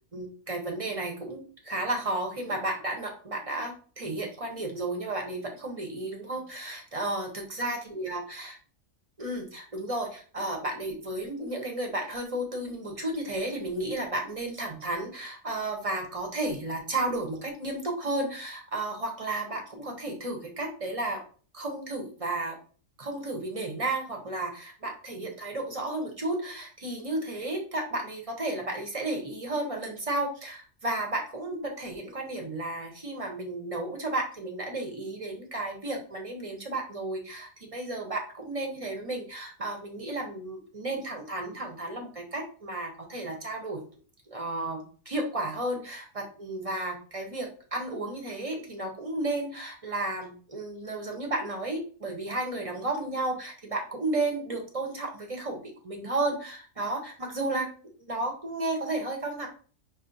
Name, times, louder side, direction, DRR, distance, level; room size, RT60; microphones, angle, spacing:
voice 1, 0.1-8.6 9.2-21.2 21.5-22.6 23.0-43.8 44.3-57.7 58.1-59.5, right 2 dB, 35° right, 1 dB, 0.6 m, -33 dB
5.3 x 2.5 x 2.6 m, 0.41 s
omnidirectional pair, 1.4 m